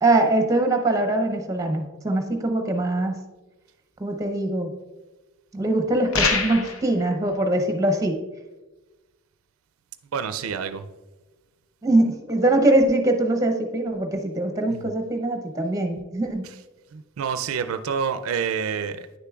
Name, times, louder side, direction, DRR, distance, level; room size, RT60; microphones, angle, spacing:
voice 1, 0.0-3.2 4.0-4.7 5.5-8.2 11.8-16.4, right 2 dB, 15° right, 4 dB, 0.7 m, -22 dB
sound 1, 6.1-6.9, left 4 dB, 85° left, 0.8 m, -23 dB
voice 2, 10.1-10.9 14.7-14.8 16.4-16.5 16.9-19.1, right 6 dB, 85° right, 9 dB, 0.4 m, -28 dB
9.4 x 6.7 x 2.3 m, 1.2 s
head